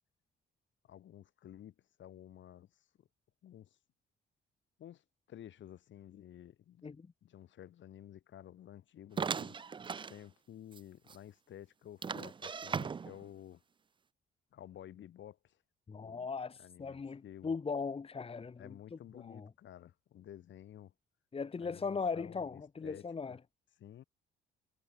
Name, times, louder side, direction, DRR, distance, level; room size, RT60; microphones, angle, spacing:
voice 1, 0.8-3.1 3.4-3.8 4.8-6.9 7.2-9.6 10.1-13.6 14.5-15.6 15.9-16.3 16.6-17.5 18.6-20.9 21.6-23.4 23.8-24.0, left 11 dB, 70° left, 3.4 m, -53 dB
sound 1, 9.2-10.2 10.7-10.8 11.1-11.2 12.0-13.3, right 6 dB, 25° right, 0.4 m, -38 dB
voice 2, 15.9-19.5 21.3-23.4, left 5 dB, 30° left, 1.2 m, -39 dB
cardioid pair, 90°, 20 cm